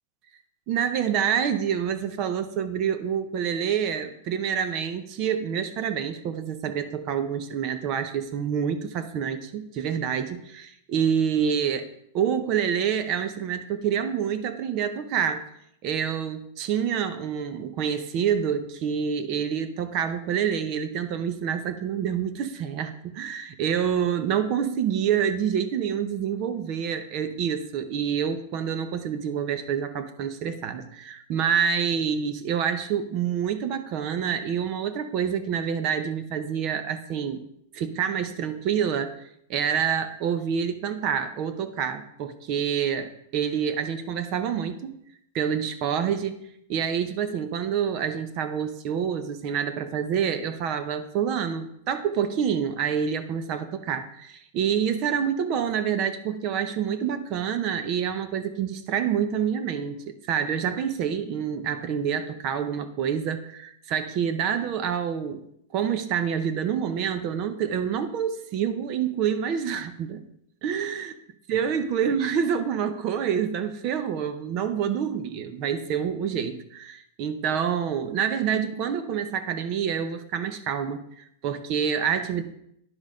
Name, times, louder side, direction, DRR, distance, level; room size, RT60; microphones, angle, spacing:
voice 1, 0.7-11.9 12.1-15.4 15.8-37.4 37.7-39.2 39.5-44.9 45.3-46.4 46.7-65.4 65.7-70.2 70.6-71.1 71.5-82.4, right 8 dB, 35° right, 11 dB, 0.8 m, -27 dB
10.5 x 6.3 x 5.0 m, 0.73 s
supercardioid pair, 165°, 0 cm